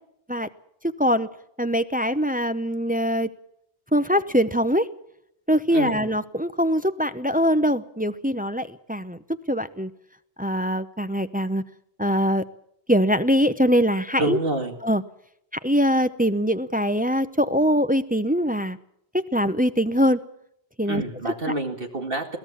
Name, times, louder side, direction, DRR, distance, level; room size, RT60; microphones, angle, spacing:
voice 1, 1.6-3.3 3.9-4.9 5.5-9.2 9.5-9.9 10.4-11.6 12.0-12.4 12.9-14.4 14.8-15.0 15.6-18.8 19.1-20.2 20.8-21.0, equal, 10° right, 11 dB, 0.6 m, -22 dB
voice 2, 5.7-6.0 14.2-14.7 20.9-22.4, right 2 dB, 55° right, 4 dB, 2.4 m, -27 dB
22.0 x 17.0 x 7.2 m, 0.75 s
omnidirectional pair, 1.1 m